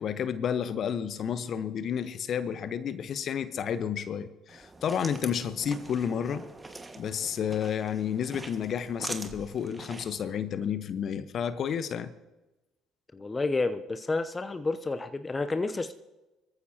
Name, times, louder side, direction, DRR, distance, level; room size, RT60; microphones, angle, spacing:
voice 1, 0.0-6.4 7.0-12.1, left 8 dB, 50° left, 12 dB, 1.1 m, -31 dB
sound 1, 4.5-10.2, right 2 dB, 20° right, 1.7 m, -43 dB
voice 2, 13.1-15.9, left 3 dB, 25° left, 10 dB, 0.8 m, -30 dB
23.5 x 14.0 x 2.9 m, 1.0 s
hypercardioid pair, 55°, 0 cm